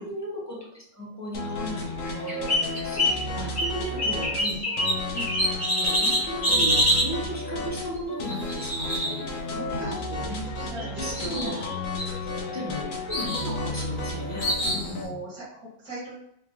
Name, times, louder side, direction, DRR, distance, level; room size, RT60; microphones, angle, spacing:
voice 1, 0.0-4.6 5.1-5.3 5.8-9.3 9.5-10.7 11.0-11.7 12.2-15.2, equal, 20° right, -4 dB, 0.4 m, -36 dB
sound 1, 1.3-15.1, left 2 dB, 65° left, 1.2 m, -33 dB
sound 2, 2.0-3.2 3.5-7.1 8.2-9.7 10.6-10.8 11.1-11.7 12.0-12.7 13.1-13.5 14.4-14.9, equal, 50° left, 1.6 m, -26 dB
voice 2, 3.9-4.7 9.8-9.9 10.6-11.6 15.0-16.2, right 1 dB, 75° right, -6 dB, 1.6 m, -39 dB
4.9 x 2.2 x 2.9 m, 0.76 s
omnidirectional pair, 1.6 m